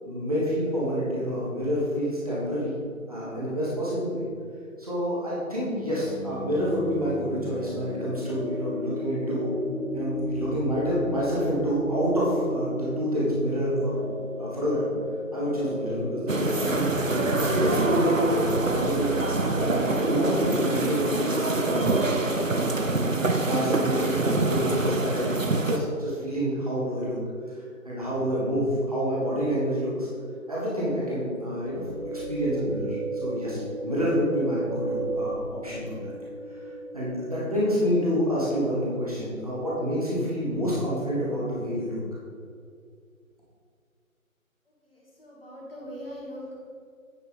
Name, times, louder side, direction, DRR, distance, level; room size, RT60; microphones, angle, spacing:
voice 1, 0.0-2.8 3.1-4.2 4.8-9.5 9.9-14.0 14.4-14.9 15.3-18.2 18.7-22.0 22.6-27.2 27.8-30.1 30.5-36.1 36.9-42.0, equal, 25° right, -7 dB, 1.6 m, -28 dB
sound 1, 5.6-21.6, left 1 dB, 65° left, 1.5 m, -35 dB
sound 2, 16.3-25.8, right 2 dB, 65° right, 0.8 m, -25 dB
sound 3, 31.6-38.9, right 2 dB, 85° right, 1.2 m, -35 dB
voice 2, 44.8-46.6, equal, 40° left, -4 dB, 2.0 m, -41 dB
9.5 x 5.6 x 4.1 m, 2.3 s
figure-of-eight pair, 165°, 43 cm